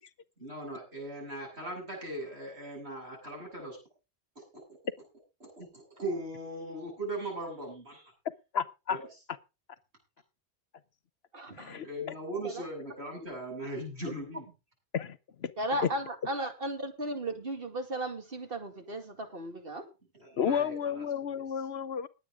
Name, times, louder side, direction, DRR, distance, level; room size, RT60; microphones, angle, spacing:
voice 1, 0.4-3.8 4.5-4.6 5.4-8.1 8.9-9.0 11.8-14.5 20.2-21.1 21.3-21.4, right 1 dB, 75° right, 8.5 m, -39 dB
voice 2, 8.5-9.0 11.6-11.9 14.9-15.5 20.4-22.1, left 7 dB, 70° left, 1.1 m, -32 dB
voice 3, 11.3-11.8 12.4-12.7 14.1-14.2 15.6-19.9, right 1 dB, 60° right, 2.5 m, -35 dB
20.0 x 9.0 x 3.7 m
omnidirectional pair, 1.1 m